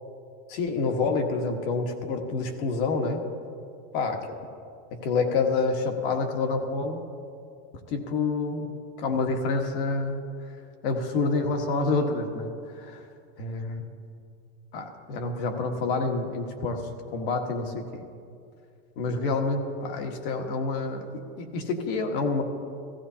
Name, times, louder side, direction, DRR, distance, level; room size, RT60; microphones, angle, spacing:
voice 1, 0.5-3.2 3.9-4.2 4.9-7.0 7.9-10.2 10.8-13.1 13.4-13.9 14.7-18.0 19.0-22.4, left 3 dB, 60° left, 4 dB, 1.5 m, -28 dB
15.5 x 15.5 x 2.8 m, 2.4 s
supercardioid pair, 155°, 31 cm